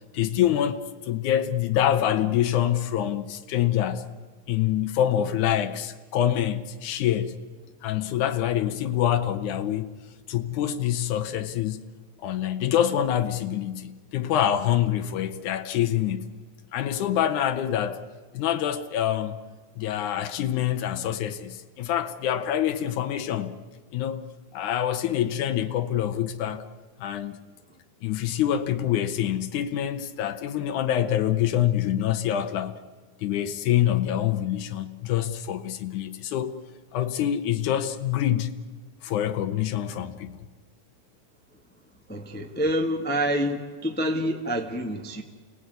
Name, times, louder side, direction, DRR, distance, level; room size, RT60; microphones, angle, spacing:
voice 1, 0.1-4.1 4.5-7.4 7.8-9.9 10.3-11.8 12.2-16.3 16.7-18.0 18.3-19.4 19.8-23.6 23.9-26.6 27.0-27.4 28.0-32.8 33.2-36.5 36.9-38.5 39.0-40.5, left 11 dB, 85° left, 2.5 m, -26 dB
voice 2, 42.1-45.2, equal, 5° left, 1.1 m, -27 dB
28.5 x 18.0 x 9.3 m
omnidirectional pair, 3.4 m